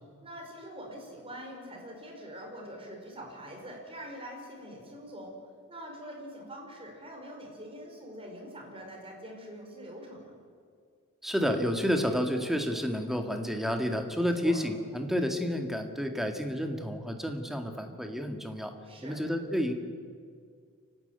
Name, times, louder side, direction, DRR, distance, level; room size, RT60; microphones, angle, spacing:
voice 1, 0.2-5.3 5.7-10.3 14.1-14.6 18.8-19.2, equal, 25° right, 0 dB, 5.6 m, -44 dB
voice 2, 11.2-18.7 19.0-19.7, equal, ahead, 4 dB, 1.8 m, -30 dB
29.0 x 12.5 x 9.2 m, 2.1 s
head